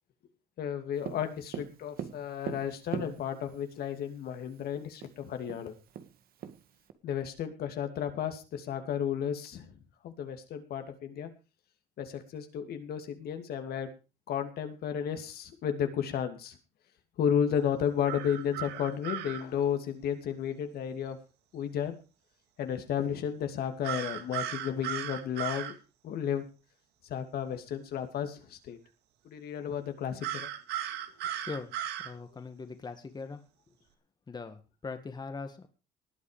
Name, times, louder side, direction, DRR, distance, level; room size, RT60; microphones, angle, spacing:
voice 1, 0.6-5.7 7.0-9.7 10.0-11.3 12.0-13.9 14.3-16.6 17.2-21.2 21.5-22.0 22.6-25.7 26.0-26.4 27.1-28.8 29.2-30.5, left 8 dB, 65° left, 7 dB, 2.6 m, -33 dB
Tap, 1.0-3.6 4.6-4.7 5.0-5.1 5.5-6.9, right 9 dB, 60° right, 1.9 m, -40 dB
sound 1, 18.1-19.4 23.8-25.7 30.2-32.1, right 11 dB, 80° right, 2.1 m, -36 dB
voice 2, 31.4-31.7 32.0-33.4 34.3-35.7, left 4 dB, 25° left, 7 dB, 2.0 m, -41 dB
19.5 x 8.6 x 5.1 m, 0.33 s
cardioid pair, 110°, 17 cm